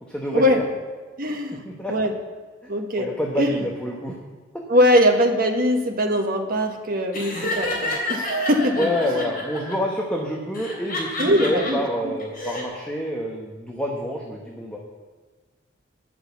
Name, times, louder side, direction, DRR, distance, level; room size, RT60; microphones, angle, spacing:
voice 1, 0.1-0.6 1.6-1.9 2.6-4.2 4.8-4.9 8.7-14.8, equal, 5° left, -2 dB, 1.1 m, -27 dB
voice 2, 1.2-2.1 2.7-3.1 3.4-3.5 4.7-8.9 11.2-12.1, equal, 50° right, 3 dB, 1.3 m, -21 dB
Laughter, 7.1-9.7 10.5-11.7 12.2-12.6, left 2 dB, 50° left, 3.5 m, -29 dB
10.5 x 6.4 x 8.2 m, 1.4 s
head